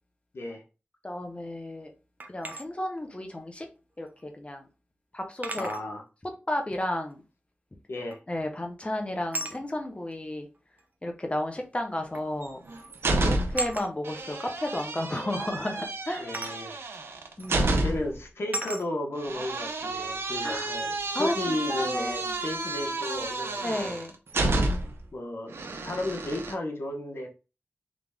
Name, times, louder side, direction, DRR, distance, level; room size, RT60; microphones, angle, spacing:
voice 1, 1.0-1.9 2.2-3.7 4.0-4.7 5.1-5.7 6.2-7.2 8.3-10.5 11.0-12.6 13.2-16.3 16.6-16.9 17.4-17.8 20.4-20.7 21.1-22.3 23.6-24.1, left 1 dB, 30° left, 1.2 m, -33 dB
Small Bottle on Concrete, 2.2-2.7 4.2-4.3 5.4-5.9 8.1-8.4 9.3-9.6 10.8-10.9 12.1-12.4 12.6-12.9 13.5-13.9 16.3-16.6 17.4-17.5 18.5-18.9, right 2 dB, 45° right, 0.7 m, -35 dB
voice 2, 5.6-6.0 7.9-8.2 13.1-13.4 16.2-16.8 17.7-24.0 25.1-25.5 25.8-27.3, left 1 dB, 75° left, 1.2 m, -34 dB
sound 1, 12.4-13.7 14.0-18.2 19.2-25.0 25.5-26.5, right 2 dB, 85° right, 0.7 m, -30 dB
3.9 x 3.3 x 3.6 m
cardioid pair, 55°, 4 cm